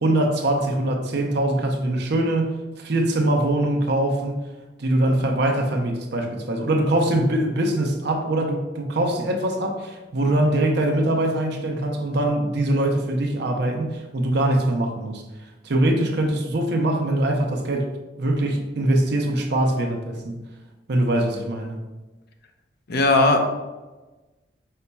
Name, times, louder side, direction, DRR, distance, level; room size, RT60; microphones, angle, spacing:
voice 1, 0.0-4.3 4.8-15.2 15.6-17.9 18.2-20.4 20.9-21.8, right 1 dB, 60° right, 3 dB, 0.6 m, -22 dB
voice 2, 22.9-23.4, left 2 dB, 55° left, 4 dB, 0.6 m, -17 dB
5.6 x 4.0 x 2.3 m, 1.2 s
head